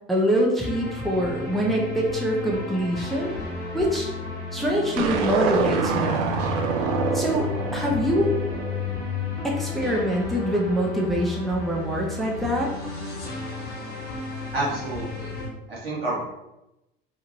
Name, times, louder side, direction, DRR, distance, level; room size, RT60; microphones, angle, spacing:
voice 1, 0.1-3.3 3.7-4.1 4.5-6.2 7.1-8.3 9.4-12.7, equal, ahead, -3 dB, 0.7 m, -24 dB
sound 1, 0.6-15.5, left 4 dB, 35° left, 1.1 m, -33 dB
sound 2, 5.0-9.4, right 5 dB, 55° right, 0.5 m, -26 dB
voice 2, 14.5-15.3 15.7-16.3, right 2 dB, 90° right, -7 dB, 1.2 m, -29 dB
2.9 x 2.5 x 2.8 m, 0.90 s
figure-of-eight pair, 70°, 29 cm